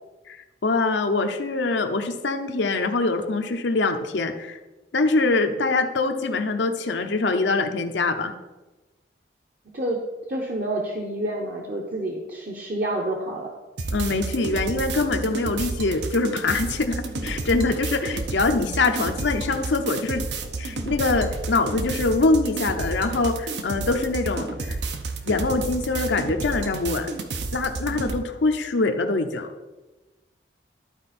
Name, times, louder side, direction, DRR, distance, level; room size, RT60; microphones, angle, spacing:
voice 1, 0.6-4.6 4.9-8.3 13.9-20.2 20.6-24.8 25.3-27.1 27.5-29.5, left 3 dB, 80° left, 6 dB, 0.7 m, -24 dB
voice 2, 10.3-13.5, right 1 dB, 45° right, -1 dB, 0.9 m, -28 dB
sound 1, 13.8-28.2, right 3 dB, 70° right, 0.7 m, -31 dB
11.5 x 4.4 x 4.2 m, 1.1 s
head